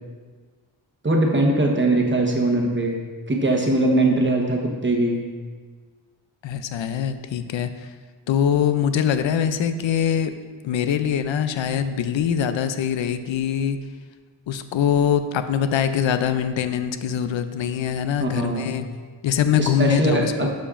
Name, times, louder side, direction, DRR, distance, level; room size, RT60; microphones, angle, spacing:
voice 1, 1.0-3.0 3.3-5.2 18.2-18.7 19.6-20.5, right 2 dB, 25° right, 0 dB, 1.0 m, -21 dB
voice 2, 6.4-7.9 8.3-10.3 10.6-13.8 14.5-18.9 19.2-20.5, left 8 dB, 80° left, 10 dB, 0.5 m, -23 dB
11.5 x 5.2 x 2.5 m, 1.5 s
wide cardioid pair, 110°, 45 cm